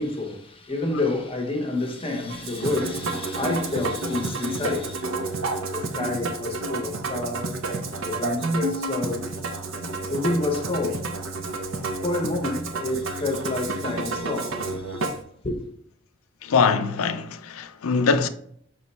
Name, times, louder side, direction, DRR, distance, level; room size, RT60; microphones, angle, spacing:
voice 1, 0.0-5.1 5.7-7.5 7.9-9.3 10.1-11.0 11.4-11.5 12.0-15.1 15.4-15.7, left 2 dB, 25° left, 0.7 m, -29 dB
Musical instrument, 2.3-15.2, right 2 dB, 70° right, 0.6 m, -30 dB
voice 2, 16.4-18.3, left 5 dB, 85° left, 0.4 m, -22 dB
5.9 x 2.2 x 4.0 m
head